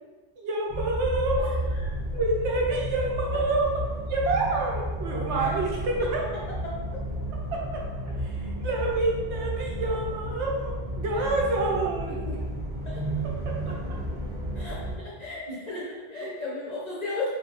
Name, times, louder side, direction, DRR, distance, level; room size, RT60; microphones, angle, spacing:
voice 1, 0.4-1.5 2.1-6.2 7.5-12.2 13.4-13.7, right 2 dB, 70° right, -2 dB, 0.9 m, -28 dB
sound 1, 0.7-15.0, equal, 30° right, 0.6 m, -32 dB
voice 2, 6.6-7.0 11.1-11.3 12.3-12.4 12.8-13.0 14.5-17.4, left 2 dB, 45° left, -6 dB, 0.6 m, -35 dB
3.0 x 2.6 x 2.8 m, 1.2 s
omnidirectional pair, 1.2 m